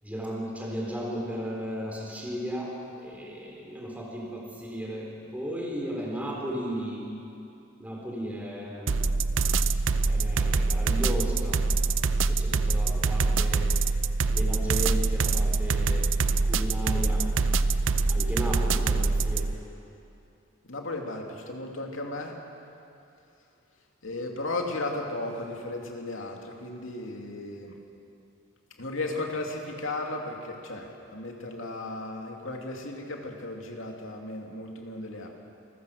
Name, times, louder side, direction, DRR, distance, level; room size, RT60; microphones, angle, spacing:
voice 1, 0.0-7.1 7.8-9.0 10.0-11.6 12.3-13.7 14.3-16.1 16.4-17.3 18.1-19.5, equal, 10° right, -3 dB, 3.9 m, -35 dB
sound 1, 8.9-19.5, right 3 dB, 65° right, 0.6 m, -25 dB
voice 2, 20.7-22.4 24.0-27.8 28.8-35.3, left 2 dB, 75° left, 1 dB, 2.6 m, -35 dB
27.0 x 15.0 x 6.5 m, 2.8 s
head